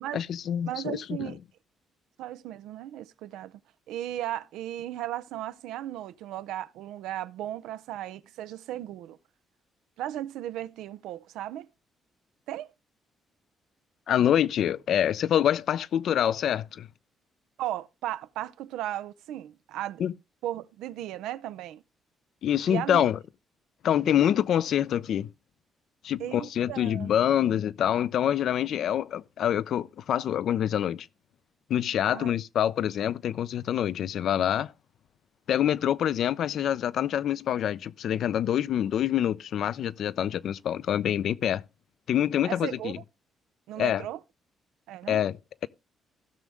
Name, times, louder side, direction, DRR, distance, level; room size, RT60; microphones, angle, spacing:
voice 1, 0.1-1.3 14.1-16.9 20.0-20.1 22.4-23.2 23.8-25.3 26.0-31.1 31.7-34.7 35.5-41.6 42.1-43.0 43.8-44.0 45.1-45.4, left 10 dB, 70° left, 0.5 m, -26 dB
voice 2, 0.7-1.4 2.2-3.6 3.9-9.2 10.0-11.7 12.5-12.7 17.6-20.0 20.4-21.8 22.7-23.1 26.2-27.1 32.1-32.3 42.4-43.0 43.7-44.2 44.9-45.2, right 13 dB, 90° right, 0.5 m, -36 dB
16.5 x 6.3 x 3.4 m
cardioid pair, 90°, 0 cm